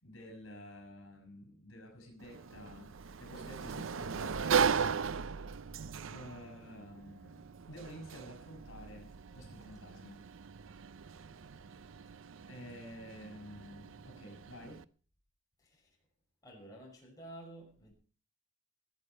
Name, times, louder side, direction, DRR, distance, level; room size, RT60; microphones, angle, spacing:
voice 1, 0.0-2.9 3.2-5.3 6.1-10.3 12.5-14.8, equal, 70° left, 4 dB, 5.6 m, -51 dB
Sliding door, 2.2-14.8, right 6 dB, 70° right, 0.6 m, -38 dB
voice 2, 16.4-17.9, right 1 dB, 15° left, -2 dB, 6.0 m, -52 dB
19.5 x 8.6 x 5.5 m, 0.40 s
head